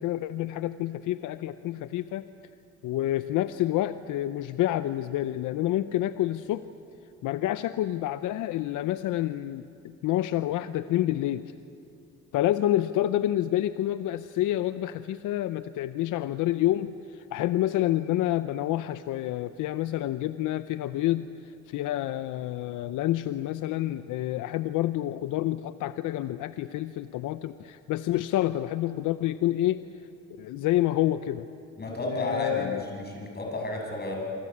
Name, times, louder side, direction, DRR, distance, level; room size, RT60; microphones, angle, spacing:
voice 1, 0.0-2.3 2.8-6.6 7.2-11.5 12.3-21.3 21.7-29.8 30.4-31.5 32.0-32.8, left 14 dB, 85° left, 12 dB, 0.7 m, -28 dB
voice 2, 31.8-34.1, left 1 dB, 35° left, 1 dB, 7.7 m, -32 dB
27.5 x 24.5 x 8.6 m, 2.6 s
cardioid pair, 90°, 30 cm